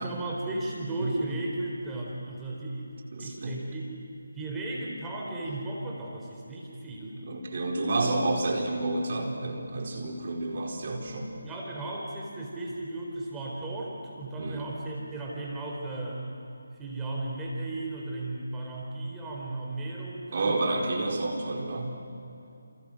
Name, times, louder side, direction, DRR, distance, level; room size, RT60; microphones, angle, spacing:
voice 1, 0.0-2.9 3.2-3.9 4.3-7.2 11.3-16.2 16.8-20.5, right 2 dB, 10° right, -3 dB, 4.0 m, -35 dB
voice 2, 3.1-3.6 7.2-11.3 14.4-14.6 20.3-21.9, right 2 dB, 45° right, 1 dB, 4.6 m, -30 dB
30.0 x 29.5 x 6.5 m, 2.6 s
figure-of-eight pair, 155°, 0 cm